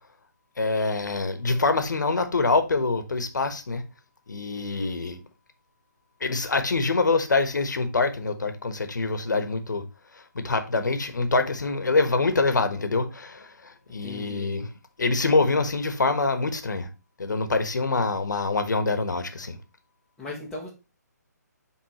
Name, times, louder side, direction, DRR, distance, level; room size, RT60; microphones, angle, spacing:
voice 1, 0.6-3.8 4.3-5.2 6.2-9.8 10.3-14.7 15.0-16.9 17.2-19.6, left 3 dB, 80° left, 1.2 m, -25 dB
voice 2, 14.0-14.5 20.2-20.7, left 2 dB, 5° left, 1.1 m, -37 dB
9.6 x 3.6 x 2.9 m
hypercardioid pair, 150°, 10 cm